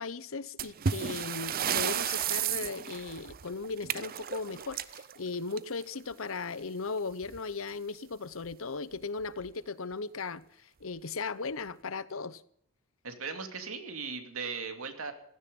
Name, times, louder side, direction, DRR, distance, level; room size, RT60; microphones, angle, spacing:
voice 1, 0.0-12.4, left 4 dB, 70° left, 0.8 m, -37 dB
sound 1, 0.6-6.0 7.2-7.4 7.7-7.8 8.4-8.5 9.2-9.5, right 8 dB, 45° right, 0.6 m, -33 dB
voice 2, 13.0-15.1, right 5 dB, 85° right, 2.7 m, -38 dB
16.5 x 14.5 x 5.4 m
head